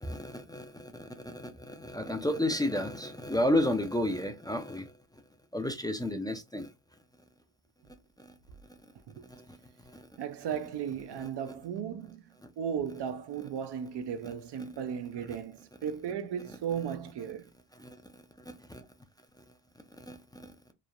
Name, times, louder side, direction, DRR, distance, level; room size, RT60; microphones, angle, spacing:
voice 1, 0.0-5.2 5.5-6.7 8.2-8.3 9.3-10.1 11.1-11.5 12.4-12.5 14.2-14.3 15.1-15.4 17.7-18.8 19.4-19.5 20.0-20.5, left 1 dB, 10° left, 0.4 m, -33 dB
voice 2, 10.2-12.2 12.6-17.5, right 8 dB, 65° right, 0.5 m, -36 dB
3.1 x 2.1 x 2.3 m
cardioid pair, 65°, 45 cm